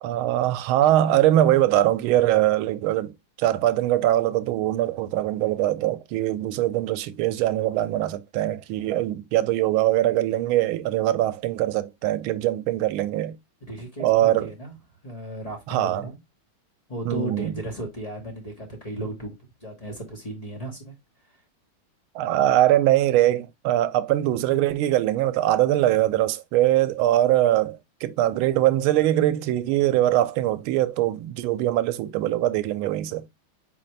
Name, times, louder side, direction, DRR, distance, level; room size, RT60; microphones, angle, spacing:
voice 1, 0.0-3.1 3.4-13.3 14.0-14.5 15.7-16.1 17.1-17.5 22.1-33.2, right 13 dB, 80° right, 1.4 m, -22 dB
voice 2, 13.6-14.8 15.0-16.2 16.9-19.3 19.6-20.9, right 1 dB, 25° left, 0.8 m, -35 dB
4.2 x 4.1 x 3.1 m
omnidirectional pair, 2.3 m